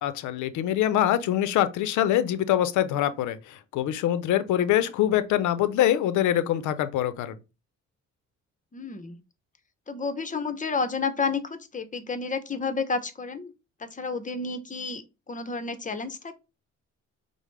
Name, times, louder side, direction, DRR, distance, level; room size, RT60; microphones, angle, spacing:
voice 1, 0.0-7.4, left 12 dB, 80° left, 0.5 m, -24 dB
voice 2, 8.7-9.2 9.9-13.5 13.8-16.3, left 4 dB, 25° left, 0.6 m, -31 dB
4.9 x 2.0 x 3.1 m
cardioid pair, 90°, 30 cm